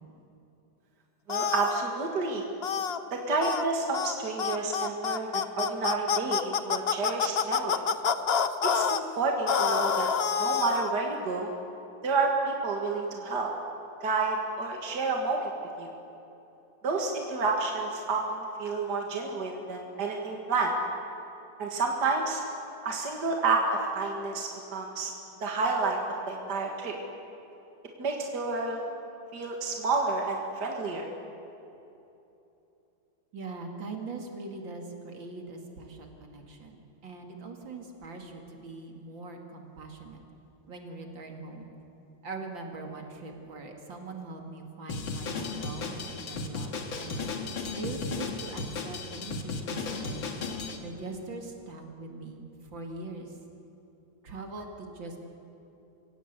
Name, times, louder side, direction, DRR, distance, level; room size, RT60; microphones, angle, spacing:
sound 1, 1.3-1.8 2.6-3.0 3.4-3.6 3.9-4.1 4.4-9.0 9.5-10.9, left 7 dB, 55° left, 0.7 m, -27 dB
voice 1, 1.3-2.4 3.1-7.8 8.7-10.1 10.4-11.5 12.0-13.5 14.0-15.5 15.8-15.9 16.8-20.7 21.6-22.4 22.8-25.1 25.4-26.0 26.3-26.9 28.0-28.8 29.3-31.1, right 3 dB, 60° right, 1 dB, 2.5 m, -29 dB
voice 2, 33.3-40.2 40.7-41.7 42.2-50.4 50.8-53.4 54.2-55.2, right 3 dB, 75° right, 2 dB, 3.1 m, -42 dB
Drum kit, 44.9-50.8, left 4 dB, 85° left, 2.5 m, -35 dB
27.5 x 16.5 x 8.3 m, 2.9 s
omnidirectional pair, 2.1 m